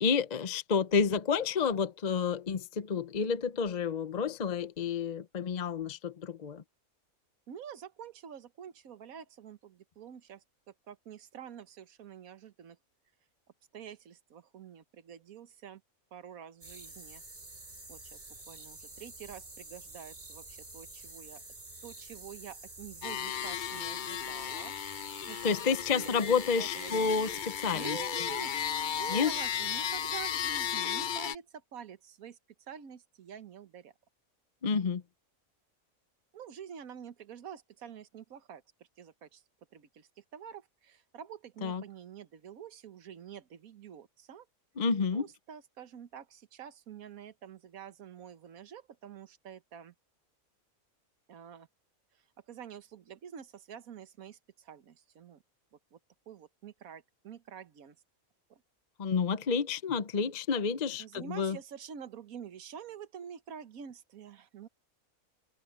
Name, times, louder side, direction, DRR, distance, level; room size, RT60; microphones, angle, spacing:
voice 1, 0.0-6.6 25.4-28.0 29.1-29.3 34.6-35.0 41.6-41.8 44.8-45.3 59.0-61.6, left 5 dB, 40° left, 0.6 m, -30 dB
voice 2, 7.5-10.4 10.9-12.8 13.7-15.8 16.1-17.2 17.9-21.4 21.8-24.7 25.3-26.1 26.6-27.1 27.7-28.5 29.0-33.9 36.3-39.4 39.7-44.5 45.1-49.9 51.3-51.7 52.1-55.4 55.7-56.0 56.3-58.0 58.5-58.6 61.0-64.7, right 8 dB, 75° right, 1.5 m, -47 dB
sound 1, 16.6-30.7, right 2 dB, 40° right, 2.9 m, -49 dB
sound 2, 23.0-31.4, left 9 dB, 85° left, 0.4 m, -35 dB
omnidirectional pair, 1.5 m